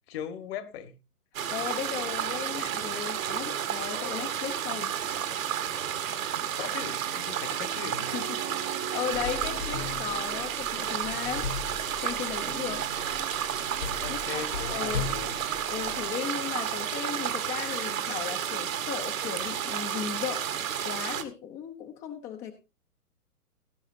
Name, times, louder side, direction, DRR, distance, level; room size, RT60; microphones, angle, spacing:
voice 1, 0.1-0.9 6.6-8.3 14.0-15.4, left 8 dB, 40° left, 1.7 m, -39 dB
sound 1, 1.3-21.2, right 9 dB, 60° right, 1.9 m, -32 dB
sound 2, 1.4-5.6 6.8-18.7, right 9 dB, 25° right, 1.0 m, -46 dB
voice 2, 1.5-4.9 8.0-11.5 12.0-12.9 14.1-15.1 15.7-20.5 20.8-22.5, left 9 dB, 20° left, 0.9 m, -36 dB
sound 3, 9.1-16.1, left 6 dB, 60° left, 1.7 m, -39 dB
18.0 x 10.0 x 2.7 m
figure-of-eight pair, 125°, 45 cm